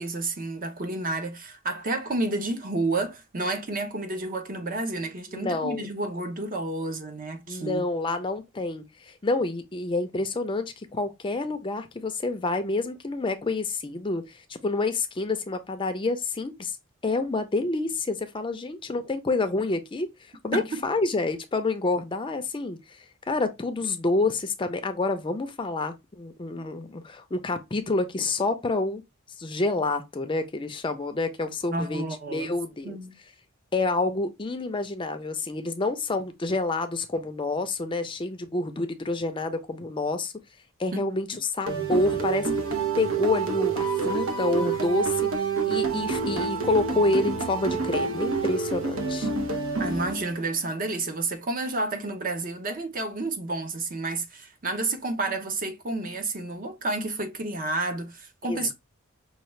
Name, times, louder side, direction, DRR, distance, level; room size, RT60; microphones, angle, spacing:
voice 1, 0.0-7.8 20.5-20.8 31.7-32.6 32.8-33.2 40.9-41.0 49.8-58.7, right 2 dB, 40° right, 0.7 m, -30 dB
voice 2, 5.3-5.9 7.5-16.8 17.0-20.1 20.4-22.8 23.3-29.0 29.4-32.0 32.3-33.0 33.7-40.3 40.8-42.5 43.0-45.3 45.7-49.3 58.5-58.7, left 3 dB, 25° left, 0.4 m, -28 dB
sound 1, 41.7-50.6, right 5 dB, 80° right, 0.9 m, -28 dB
5.6 x 2.3 x 3.1 m
head